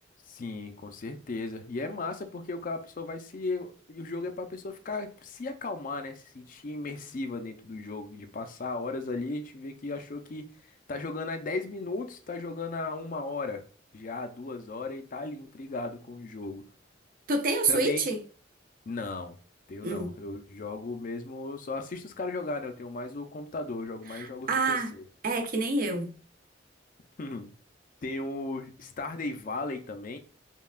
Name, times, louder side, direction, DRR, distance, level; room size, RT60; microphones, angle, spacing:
voice 1, 0.3-13.6 13.9-16.7 17.7-18.0 18.9-19.4 19.7-25.0 27.2-27.5 28.0-30.2, left 3 dB, 45° left, 0.5 m, -36 dB
voice 2, 17.3-18.2 19.8-20.1 24.1-24.9 25.2-26.1, right 3 dB, 50° right, 0.5 m, -27 dB
5.4 x 2.3 x 2.3 m
head